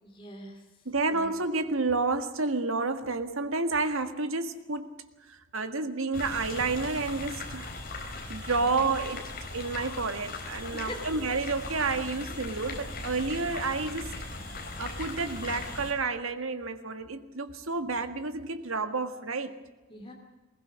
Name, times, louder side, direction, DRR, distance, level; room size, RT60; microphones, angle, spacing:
voice 1, 0.0-0.6 1.1-1.3 8.6-8.9 10.7-11.0 19.9-20.1, left 1 dB, 25° left, 1 dB, 2.6 m, -43 dB
voice 2, 0.8-4.9 5.3-7.8 8.3-9.2 9.5-14.2 14.8-19.5, right 3 dB, 90° right, 9 dB, 1.7 m, -30 dB
sound 1, 6.1-15.9, left 2 dB, 45° left, 4.1 m, -39 dB
21.0 x 20.0 x 6.4 m, 1.2 s
head